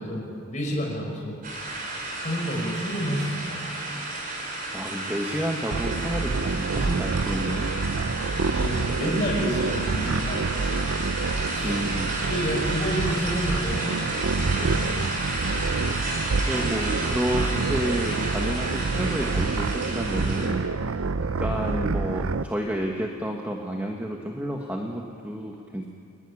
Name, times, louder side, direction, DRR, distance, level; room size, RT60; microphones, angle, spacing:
voice 1, 0.0-1.4 2.2-3.8 8.4-10.5 11.4-11.8 12.2-14.0 14.4-15.0 15.3-15.4, equal, 35° left, -2 dB, 5.7 m, -30 dB
sound 1, 1.4-20.5, right 2 dB, 40° right, 4.7 m, -32 dB
voice 2, 4.7-7.7 11.6-12.1 16.5-25.9, equal, 10° right, 0 dB, 1.4 m, -30 dB
sound 2, 5.7-22.4, right 4 dB, 75° right, 0.6 m, -27 dB
29.5 x 12.0 x 9.9 m, 2.5 s
head